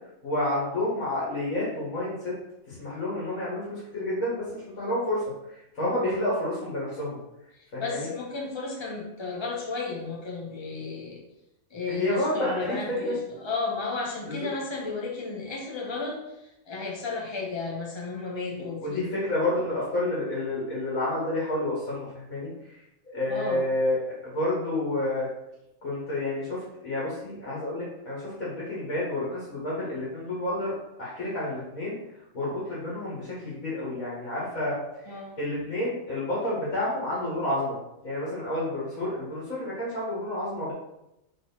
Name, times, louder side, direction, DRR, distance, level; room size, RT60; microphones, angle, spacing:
voice 1, 0.2-2.3 2.7-7.2 7.7-8.1 11.9-13.2 14.3-14.5 18.8-22.8 23.1-25.3 25.8-32.0 32.3-34.8 35.1-40.7, left 1 dB, 85° left, -8 dB, 2.7 m, -30 dB
voice 2, 7.8-11.2 11.7-16.2 16.7-19.1 23.3-23.6 35.1-35.4, left 3 dB, 20° left, -2 dB, 1.3 m, -33 dB
5.0 x 4.2 x 5.8 m, 0.89 s
omnidirectional pair, 1.4 m